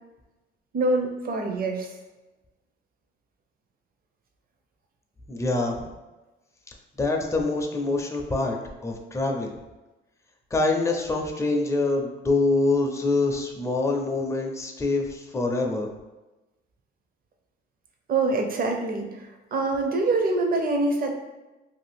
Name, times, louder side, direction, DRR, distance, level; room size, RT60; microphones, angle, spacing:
voice 1, 0.7-1.9 18.1-21.1, right 2 dB, 45° right, 3 dB, 0.6 m, -25 dB
voice 2, 5.3-5.8 7.0-8.6 8.8-9.5 10.5-15.9, left 3 dB, 15° left, 1 dB, 0.4 m, -25 dB
2.6 x 2.4 x 3.3 m, 1.1 s
cardioid pair, 90°, 20 cm